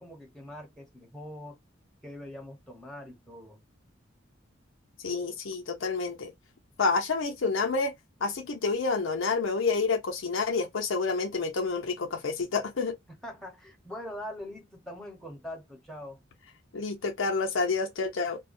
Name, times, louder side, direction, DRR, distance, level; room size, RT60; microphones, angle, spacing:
voice 1, 0.0-1.6 2.0-3.6 13.2-16.2, left 1 dB, 5° left, 1.0 m, -43 dB
voice 2, 5.0-6.3 6.8-7.9 8.2-12.9 16.7-18.4, left 4 dB, 90° left, 0.6 m, -28 dB
2.3 x 2.1 x 2.6 m
head